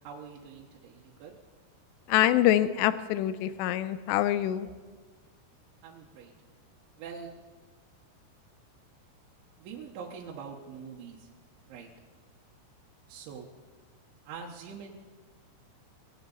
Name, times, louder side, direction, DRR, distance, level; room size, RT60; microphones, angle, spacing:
voice 1, 0.0-1.3 5.8-6.3 7.0-7.3 9.6-11.3 11.7-11.9 13.1-13.5 14.2-15.0, right 6 dB, 75° right, -2 dB, 3.4 m, -44 dB
voice 2, 2.1-4.7, left 13 dB, 85° left, 14 dB, 2.4 m, -25 dB
19.5 x 17.0 x 4.0 m, 1.4 s
omnidirectional pair, 5.5 m